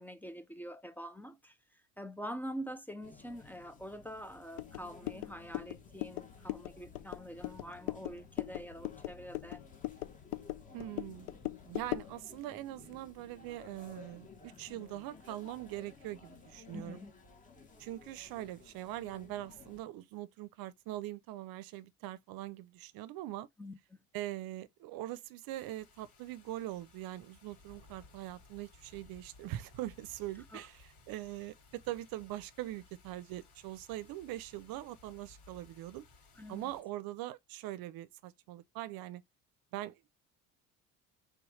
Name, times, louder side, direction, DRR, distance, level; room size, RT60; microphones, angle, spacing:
voice 1, 0.0-9.6 16.7-17.1 23.6-24.0 30.5-30.7 36.4-36.7, equal, 5° left, 0.4 m, -45 dB
sound 1, 3.0-19.8, left 4 dB, 20° left, 1.1 m, -57 dB
sound 2, 4.6-12.2, left 18 dB, 80° left, 0.6 m, -41 dB
voice 2, 10.7-17.0 17.8-23.5 24.1-30.8 31.1-36.0 36.5-39.2 39.7-40.2, right 15 dB, 65° right, 0.6 m, -42 dB
sound 3, 25.5-36.8, left 3 dB, 60° left, 2.6 m, -60 dB
3.4 x 3.1 x 4.8 m
cardioid pair, 135°, 38 cm